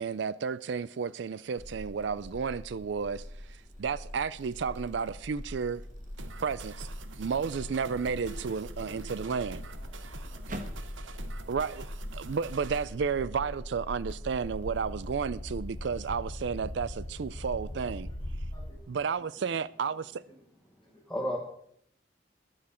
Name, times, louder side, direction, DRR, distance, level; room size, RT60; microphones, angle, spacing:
voice 1, 0.0-3.2 3.5-5.8 6.4-6.9 7.2-9.6 11.5-11.9 12.1-18.1 18.9-20.2, right 6 dB, 65° right, 0.4 m, -32 dB
sound 1, 1.6-18.7, left 1 dB, 40° left, 1.8 m, -41 dB
sound 2, 2.0-2.4 2.9-10.9, right 1 dB, 40° right, 1.5 m, -51 dB
sound 3, 6.2-12.8, right 4 dB, 85° right, 1.0 m, -48 dB
voice 2, 8.0-10.6 17.7-18.2 18.5-20.4 20.8-21.2, right 2 dB, 20° left, 5.5 m, -54 dB
voice 3, 11.1-11.5 12.2-12.3 20.8-21.4, equal, 5° left, 1.4 m, -36 dB
22.0 x 7.5 x 4.3 m
head